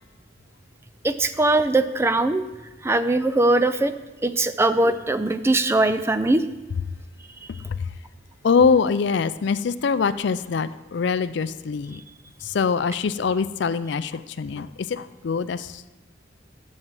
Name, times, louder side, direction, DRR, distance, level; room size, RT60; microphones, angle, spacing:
voice 1, 1.0-2.5 2.8-3.9 4.2-6.4, right 2 dB, 15° right, 11 dB, 0.3 m, -21 dB
voice 2, 8.4-12.0 12.4-15.9, left 5 dB, 60° left, 14 dB, 0.4 m, -23 dB
7.7 x 6.4 x 7.4 m, 1.1 s
head